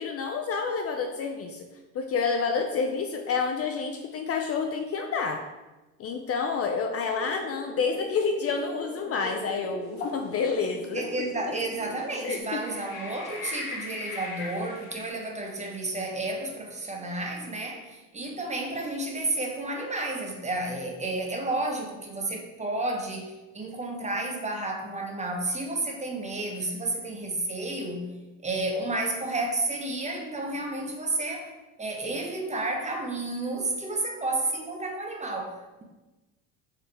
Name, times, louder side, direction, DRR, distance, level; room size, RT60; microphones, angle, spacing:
voice 1, 0.0-1.6 1.9-5.4 6.0-11.0 12.2-12.6, left 5 dB, 40° left, 4 dB, 0.4 m, -29 dB
sound 1, 7.1-12.4, equal, 15° left, 1.1 m, -40 dB
sound 2, 10.0-10.3 11.0-11.1 12.4-15.1, left 3 dB, 85° left, 1.0 m, -38 dB
voice 2, 10.9-28.1 28.4-31.5 31.8-35.5, right 2 dB, 15° right, 1 dB, 0.8 m, -31 dB
4.6 x 3.3 x 3.3 m, 1.1 s
supercardioid pair, 85°, 39 cm